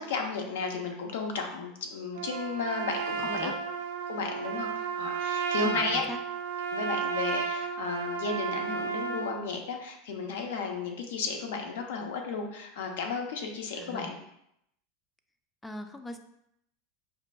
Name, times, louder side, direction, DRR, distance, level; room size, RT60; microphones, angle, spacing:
voice 1, 0.0-3.5 4.1-6.0 6.7-14.2, left 4 dB, 80° left, 3 dB, 0.6 m, -34 dB
Trumpet, 2.1-9.4, right 6 dB, 85° right, 0.4 m, -33 dB
voice 2, 5.6-6.2 13.7-14.1 15.6-16.2, left 1 dB, 10° left, 7 dB, 0.4 m, -40 dB
5.2 x 2.5 x 2.2 m, 0.76 s
supercardioid pair, 110°, 0 cm